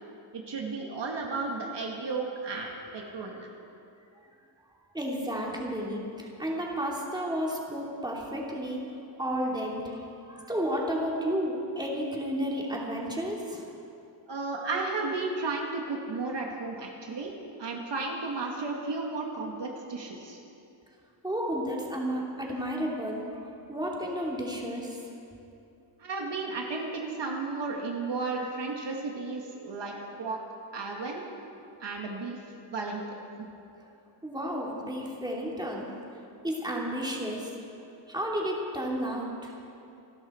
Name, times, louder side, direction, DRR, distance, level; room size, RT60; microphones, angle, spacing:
voice 1, 0.3-3.5 14.3-17.3 17.6-20.4 26.0-30.4 30.7-31.2 31.8-32.4 32.7-33.0 33.3-33.5, right 3 dB, 60° right, 0 dB, 2.1 m, -33 dB
voice 2, 4.9-8.9 9.2-13.6 21.2-23.4 23.7-25.0 34.2-35.9 36.4-37.5 38.1-39.5, equal, 10° right, -3 dB, 2.9 m, -32 dB
27.0 x 12.0 x 4.5 m, 2.6 s
wide cardioid pair, 115°, 48 cm